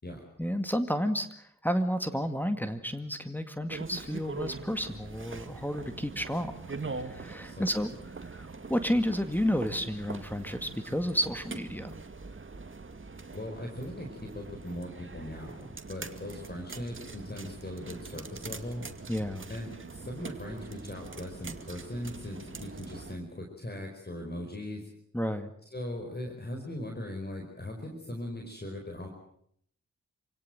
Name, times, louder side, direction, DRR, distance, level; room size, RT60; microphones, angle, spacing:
voice 1, 0.4-6.5 6.9-7.9 8.2-11.9 19.1-19.4 25.1-25.5, equal, 5° left, 7 dB, 2.0 m, -31 dB
sound 1, 3.7-23.2, right 4 dB, 40° right, 2.1 m, -43 dB
voice 2, 13.3-18.8 19.5-24.8 25.7-29.1, left 1 dB, 35° left, 2 dB, 4.8 m, -39 dB
27.5 x 17.0 x 7.8 m, 0.68 s
cardioid pair, 50°, 30 cm